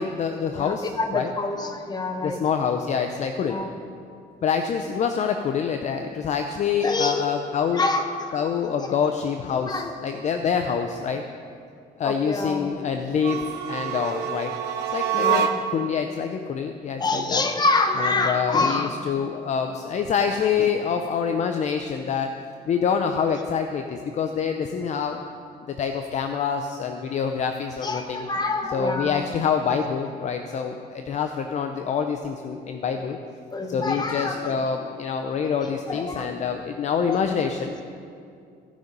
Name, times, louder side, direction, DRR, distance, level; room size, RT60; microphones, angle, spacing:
voice 1, 0.0-1.3 2.2-3.6 4.4-7.9 8.3-11.2 12.0-14.5 14.9-17.5 18.0-22.4 22.7-25.2 25.7-28.3 28.7-33.2 33.7-37.7, left 6 dB, 45° left, 6 dB, 0.6 m, -26 dB
voice 2, 0.5-2.4 3.4-3.7 6.8-7.2 7.7-8.3 8.8-8.9 9.7-9.9 12.0-12.8 15.1-15.6 17.0-18.9 27.8-29.3 33.5-34.6 35.6-36.3, left 3 dB, 25° left, 5 dB, 1.1 m, -26 dB
sound 1, 13.1-15.9, right 8 dB, 80° right, 0.8 m, -26 dB
16.0 x 5.4 x 5.2 m, 2.4 s
cardioid pair, 110°, 17 cm